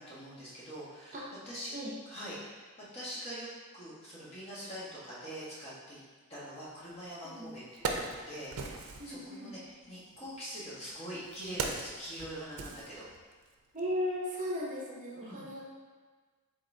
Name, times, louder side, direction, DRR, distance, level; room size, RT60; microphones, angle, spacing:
voice 1, 0.0-1.7 2.1-2.7 2.9-3.5 3.7-6.0 6.3-13.0 15.2-15.5, equal, 30° left, -8 dB, 1.3 m, -44 dB
Wood, 7.0-7.1 7.5-9.2 10.1-13.5 13.8-13.9, right 4 dB, 90° right, 0.5 m, -39 dB
voice 2, 7.2-7.6 9.0-9.5 13.7-15.6, equal, 35° right, -4 dB, 0.7 m, -36 dB
5.3 x 3.7 x 2.7 m, 1.4 s
head